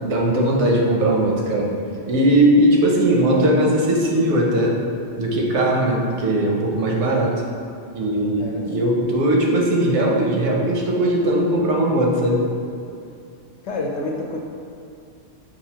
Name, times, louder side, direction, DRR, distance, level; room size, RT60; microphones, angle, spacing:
voice 1, 0.0-1.8 2.1-4.8 5.2-7.4 7.9-12.5, right 1 dB, 85° right, -1 dB, 1.0 m, -19 dB
voice 2, 8.4-9.0 13.6-14.4, left 2 dB, 85° left, 0 dB, 0.9 m, -29 dB
5.2 x 2.5 x 2.8 m, 2.5 s
omnidirectional pair, 1.1 m